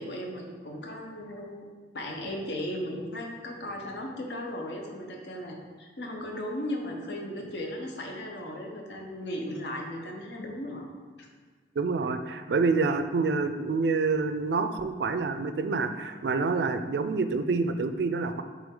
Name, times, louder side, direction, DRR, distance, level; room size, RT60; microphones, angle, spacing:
voice 1, 0.0-1.7 1.9-10.9 11.2-11.3, left 1 dB, 80° left, 1 dB, 0.9 m, -36 dB
voice 2, 11.8-18.4, right 4 dB, 70° right, 9 dB, 0.4 m, -27 dB
7.1 x 3.5 x 3.8 m, 1.5 s
head